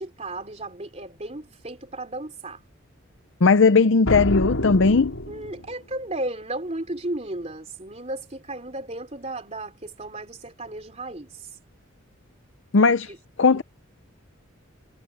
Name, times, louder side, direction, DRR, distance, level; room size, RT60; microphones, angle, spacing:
voice 1, 0.0-2.6 5.3-11.6 13.1-13.2, right 2 dB, 30° right, 3.5 m, -34 dB
voice 2, 3.4-5.1 12.7-13.1 13.4-13.6, left 4 dB, 60° left, 0.6 m, -17 dB
sound 1, 4.0-5.8, left 1 dB, 85° left, 3.5 m, -27 dB
head